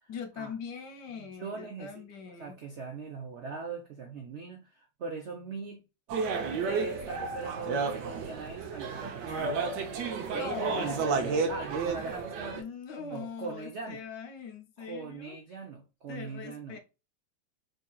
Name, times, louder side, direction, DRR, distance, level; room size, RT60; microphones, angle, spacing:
voice 1, 0.1-2.6 10.3-11.9 12.5-15.4 16.1-16.8, left 6 dB, 70° left, 1.3 m, -41 dB
voice 2, 1.2-5.8 6.6-9.7 10.3-12.7 13.0-14.0 14.8-16.8, right 4 dB, 85° right, 0.6 m, -40 dB
sound 1, 6.1-12.6, right 5 dB, 70° right, 1.1 m, -32 dB
5.0 x 2.7 x 2.3 m
omnidirectional pair, 2.1 m